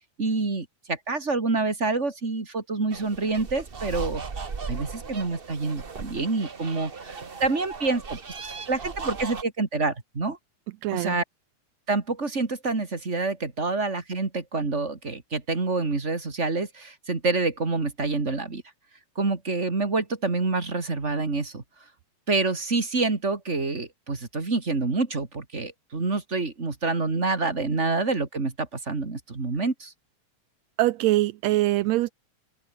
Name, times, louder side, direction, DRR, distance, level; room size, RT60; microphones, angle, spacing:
voice 1, 0.2-4.2 4.7-10.4 10.9-11.2 11.9-18.6 19.2-21.6 22.3-29.9, right 3 dB, 25° right, 2.7 m, -27 dB
sound 1, 2.9-9.4, right 5 dB, 55° right, 0.6 m, -37 dB
voice 2, 10.8-11.2 30.8-32.1, right 16 dB, 75° right, 1.8 m, -23 dB
open air
omnidirectional pair, 3.4 m